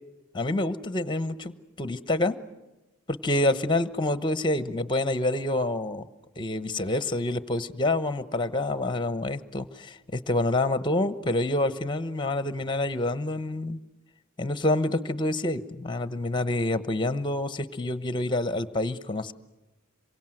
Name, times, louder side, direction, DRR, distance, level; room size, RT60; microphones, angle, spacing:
voice 1, 0.3-2.4 3.1-6.1 6.4-13.8 14.4-19.3, left 2 dB, 20° left, 13 dB, 1.0 m, -27 dB
27.0 x 23.5 x 7.8 m, 1.1 s
head